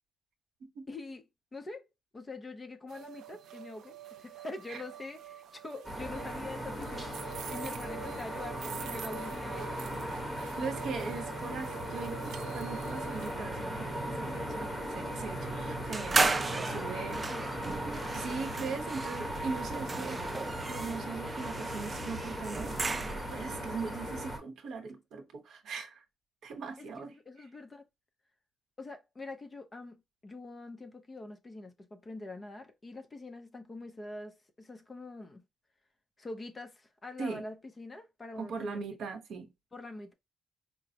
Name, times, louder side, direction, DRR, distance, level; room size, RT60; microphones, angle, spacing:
voice 1, 0.9-1.2 1.5-1.9 2.1-10.0 16.4-18.0 26.8-27.9 28.8-35.4 36.2-38.8 39.7-40.1, left 2 dB, 25° left, 0.6 m, -45 dB
sound 1, 2.9-13.3, right 10 dB, 90° right, 0.5 m, -47 dB
sound 2, 5.8-24.4, equal, 5° left, 1.1 m, -38 dB
voice 2, 10.6-17.2 18.1-20.3 20.7-23.0 23.3-26.0 26.4-27.1 37.2-37.4 38.4-39.5, right 4 dB, 70° right, 0.9 m, -40 dB
sound 3, 15.9-23.4, right 3 dB, 25° right, 0.3 m, -35 dB
4.7 x 2.0 x 2.7 m
cardioid pair, 150°, 0 cm